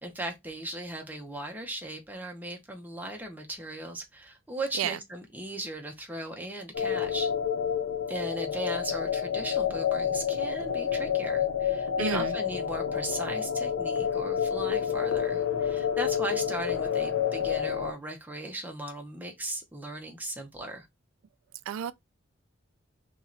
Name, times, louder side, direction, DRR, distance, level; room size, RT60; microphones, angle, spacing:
voice 1, 0.0-7.3 8.1-20.9, right 1 dB, 10° right, 0.7 m, -37 dB
sound 1, 6.7-17.9, left 8 dB, 80° left, 0.7 m, -29 dB
voice 2, 12.0-12.3 21.7-21.9, right 9 dB, 90° right, 0.3 m, -30 dB
3.0 x 2.9 x 3.7 m
head